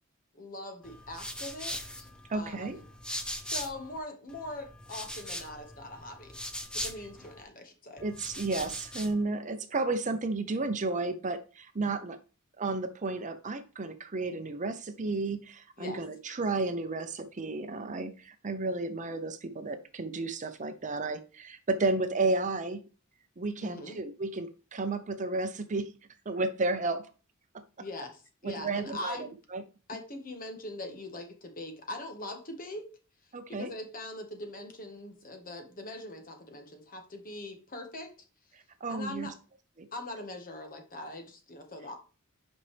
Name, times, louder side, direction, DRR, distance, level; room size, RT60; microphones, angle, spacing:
voice 1, 0.3-2.8 3.4-6.4 6.7-8.0 15.8-16.0 23.6-24.0 27.8-29.3 29.9-33.0 33.5-38.1 38.9-39.3 39.9-42.0, left 1 dB, 40° left, 4 dB, 1.5 m, -42 dB
sound 1, 0.8-4.0 4.3-7.4 8.0-9.2, equal, 5° left, 0.7 m, -40 dB
voice 2, 2.3-2.8 8.0-12.2 12.6-22.8 23.4-25.9 26.3-27.1 28.4-29.6 33.3-33.7 38.8-39.3 39.8-39.9, right 3 dB, 35° right, 9 dB, 0.7 m, -32 dB
8.3 x 5.4 x 3.4 m, 0.35 s
head